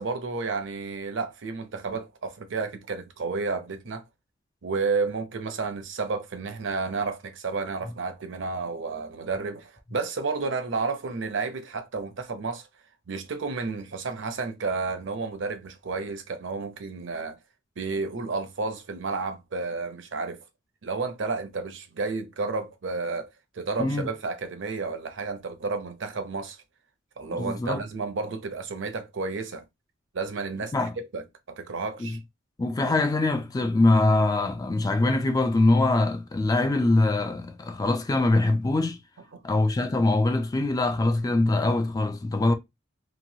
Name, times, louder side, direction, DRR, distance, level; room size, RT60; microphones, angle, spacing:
voice 1, 0.0-4.0 4.6-12.7 13.1-17.4 17.8-20.4 20.8-26.6 27.2-29.6 30.1-32.2 39.3-39.4, right 4 dB, 65° right, 0.6 m, -31 dB
voice 2, 27.3-27.8 30.7-30.9 32.0-32.2 32.6-39.0 39.4-42.5, left 2 dB, 20° left, 0.3 m, -23 dB
3.0 x 2.2 x 2.7 m
head